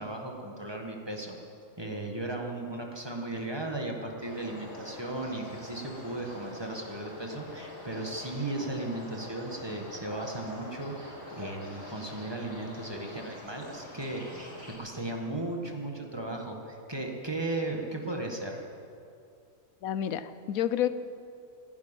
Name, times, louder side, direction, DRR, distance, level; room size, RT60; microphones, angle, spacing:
voice 1, 0.0-1.3 1.8-18.6, right 2 dB, 20° right, 1 dB, 1.6 m, -36 dB
sound 1, 4.2-14.8, left 1 dB, 60° left, 4.5 m, -45 dB
voice 2, 19.8-20.9, left 10 dB, 85° left, 13 dB, 1.1 m, -29 dB
15.0 x 10.5 x 9.1 m, 2.5 s
omnidirectional pair, 1.4 m